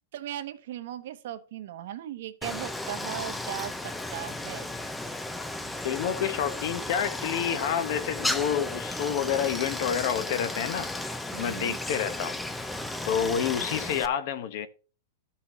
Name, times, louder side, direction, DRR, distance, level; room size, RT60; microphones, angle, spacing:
voice 1, 0.1-4.7 11.3-11.8, right 12 dB, 55° right, 1.0 m, -38 dB
Stream, 2.4-14.1, left 2 dB, 5° left, 0.4 m, -34 dB
voice 2, 5.8-11.1 11.4-12.4 13.1-14.7, left 8 dB, 45° left, 0.8 m, -29 dB
13.5 x 5.8 x 3.1 m
supercardioid pair, 175°, 0 cm